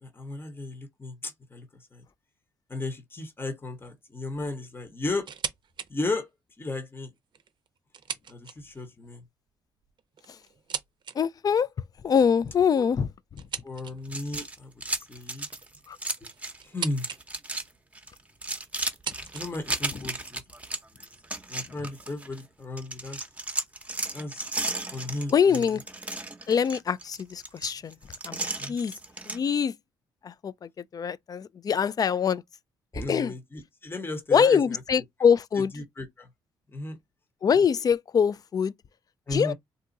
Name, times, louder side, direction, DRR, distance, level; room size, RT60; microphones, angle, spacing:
voice 1, 0.0-1.7 1.9-2.0 2.7-5.3 5.9-6.3 6.6-7.1 8.3-9.2 12.7-12.9 13.6-15.5 16.6-17.1 19.3-20.4 21.5-23.3 24.1-24.5 24.9-25.6 28.6-28.7 32.9-34.8 35.7-36.3 36.7-37.0 39.3-39.5, left 2 dB, 25° left, 1.0 m, -35 dB
sound 1, 5.2-5.9 6.3-6.4 7.2-8.9 9.8-11.2 13.4-14.2 15.4-17.2 17.5-18.1 18.8-20.2, right 7 dB, 50° right, 0.6 m, -39 dB
voice 2, 11.2-11.7 12.0-13.4 15.9-16.0 25.3-25.8 26.5-28.0 28.3-28.4 28.7-28.9 29.3-29.7 30.2-32.4 33.1-33.3 34.3-35.7 37.4-38.7 39.3-39.5, left 7 dB, 40° left, 0.3 m, -24 dB
sound 2, 14.0-16.6 16.9-17.7 17.9-22.4 22.8-29.4, right 2 dB, 15° right, 0.8 m, -34 dB
2.7 x 2.3 x 4.0 m
supercardioid pair, 60°, 10 cm